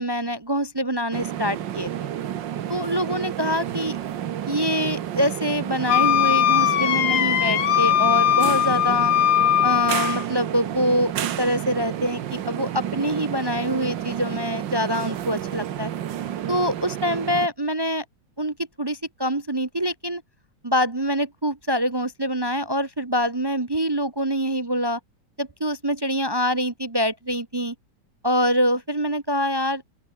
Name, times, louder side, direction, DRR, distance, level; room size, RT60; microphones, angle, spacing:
voice 1, 0.0-1.9 2.7-3.9 4.5-9.1 9.6-15.9 16.5-18.0 18.4-20.2 20.6-25.0 25.4-27.7 28.2-29.9, equal, 30° right, 0.5 m, -25 dB
sound 1, 1.1-17.5, right 10 dB, 80° right, 1.8 m, -30 dB
Wind instrument woodwind instrument, 5.9-10.3, left 11 dB, 85° left, 1.8 m, -20 dB
open air
omnidirectional pair, 2.0 m